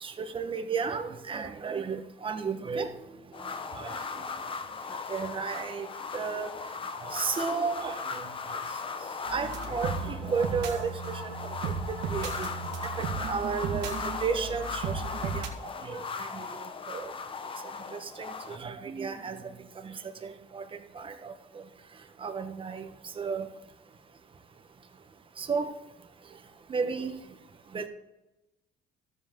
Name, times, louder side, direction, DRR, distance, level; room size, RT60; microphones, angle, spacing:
voice 1, 0.0-2.9 3.8-4.0 5.1-5.9 6.1-6.5 7.0-8.2 9.3-11.3 12.1-12.5 13.0-15.5 15.8-17.1 18.0-19.4 19.8-19.9 20.2-20.6 21.0-21.3 22.2-22.9 23.2-23.5 25.4-25.7 26.7-27.1 27.7-27.9, right 5 dB, 30° right, 7 dB, 1.2 m, -33 dB
sound 1, 3.3-18.6, left 5 dB, 30° left, 0.8 m, -38 dB
sound 2, 9.3-15.5, right 5 dB, 90° right, 1.7 m, -35 dB
13.0 x 7.6 x 3.8 m, 0.97 s
cardioid pair, 110°, 17 cm